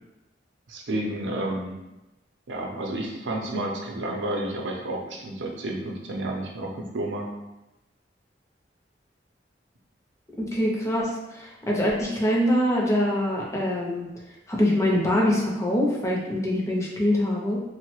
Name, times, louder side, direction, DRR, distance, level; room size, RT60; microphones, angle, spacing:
voice 1, 0.7-1.8 2.5-7.3, right 1 dB, 85° right, 0 dB, 0.5 m, -31 dB
voice 2, 10.4-14.1 14.5-17.6, left 1 dB, 15° left, -3 dB, 0.5 m, -24 dB
3.1 x 2.0 x 3.0 m, 0.97 s
head